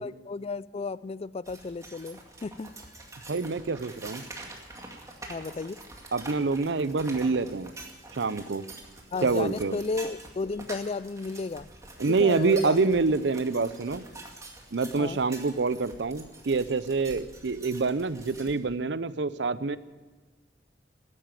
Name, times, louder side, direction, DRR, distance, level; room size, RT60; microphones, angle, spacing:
voice 1, 0.0-2.8 5.3-5.8 9.1-11.7 12.1-12.9 15.0-15.2, left 4 dB, 35° left, 17 dB, 0.4 m, -34 dB
sound 1, 1.4-18.6, right 2 dB, 20° right, 2.2 m, -46 dB
voice 2, 3.3-4.2 6.1-7.7 8.1-8.6 9.2-9.8 12.0-14.0 14.7-19.8, right 4 dB, 80° right, 15 dB, 0.6 m, -26 dB
14.0 x 11.0 x 9.0 m, 1.3 s
head